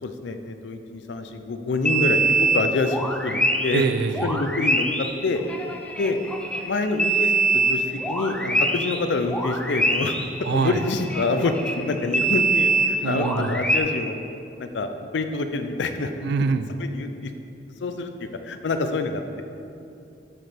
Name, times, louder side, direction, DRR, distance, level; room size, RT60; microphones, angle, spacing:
voice 1, 0.0-3.8 4.2-5.4 6.0-6.2 6.6-10.2 10.5-14.2 14.6-16.1 16.8-17.3 17.8-19.4, left 3 dB, 75° left, 7 dB, 0.5 m, -26 dB
sound 1, 1.8-3.9 4.1-9.0 9.3-13.8, right 2 dB, 5° left, 0.4 m, -24 dB
voice 2, 3.7-4.4 10.4-10.8 13.0-13.6 16.2-16.7, right 5 dB, 65° right, 11 dB, 0.3 m, -24 dB
6.0 x 5.0 x 4.3 m, 2.7 s
head